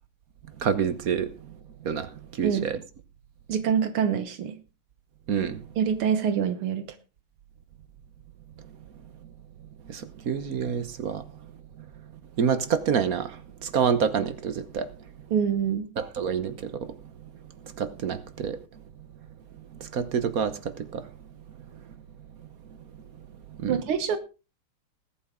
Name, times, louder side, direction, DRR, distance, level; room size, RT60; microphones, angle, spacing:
voice 1, 0.6-1.3 1.8-2.8 5.3-5.6 9.9-11.2 12.4-14.9 16.0-16.9 17.8-18.6 19.8-21.1 23.6-23.8, right 7 dB, 55° right, 1.2 m, -27 dB
voice 2, 3.5-4.6 5.8-6.9 15.3-15.9 23.7-24.2, right 7 dB, 80° right, 1.9 m, -25 dB
20.5 x 8.5 x 3.7 m
omnidirectional pair, 2.4 m